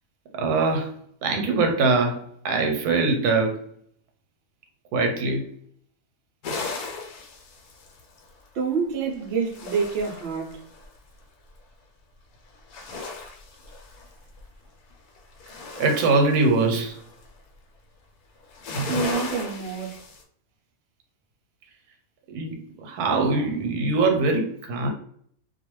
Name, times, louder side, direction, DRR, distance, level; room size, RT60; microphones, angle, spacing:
voice 1, 0.4-0.9 1.2-3.5 4.9-5.5 15.8-17.0 22.3-24.9, right 3 dB, 90° right, 1.1 m, -22 dB
sound 1, 6.4-8.4 9.2-10.9 12.5-14.4 14.9-17.3 18.4-20.2, left 2 dB, 85° left, 1.1 m, -36 dB
voice 2, 8.5-10.6 18.9-20.0, right 5 dB, 65° right, 0.6 m, -27 dB
2.4 x 2.2 x 3.0 m
omnidirectional pair, 1.6 m